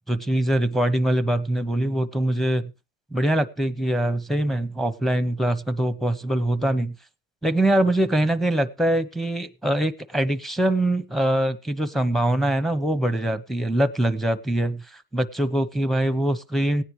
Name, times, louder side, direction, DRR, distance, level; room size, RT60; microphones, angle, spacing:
voice 1, 0.1-2.7 3.1-6.9 7.4-16.8, right 1 dB, ahead, 10 dB, 0.8 m, -23 dB
17.0 x 9.8 x 3.1 m, 0.27 s
cardioid pair, 115°, 32 cm